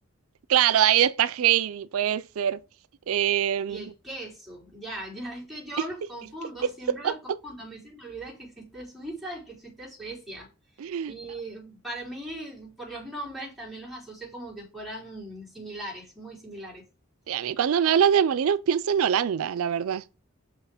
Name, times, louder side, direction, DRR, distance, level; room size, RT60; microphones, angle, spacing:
voice 1, 0.5-2.6 3.1-3.9 6.9-7.1 10.8-11.1 17.3-20.0, right 9 dB, 80° right, 0.4 m, -23 dB
voice 2, 3.7-7.2 7.4-10.5 10.8-16.9, right 1 dB, ahead, 3.8 m, -39 dB
6.6 x 5.7 x 3.5 m
head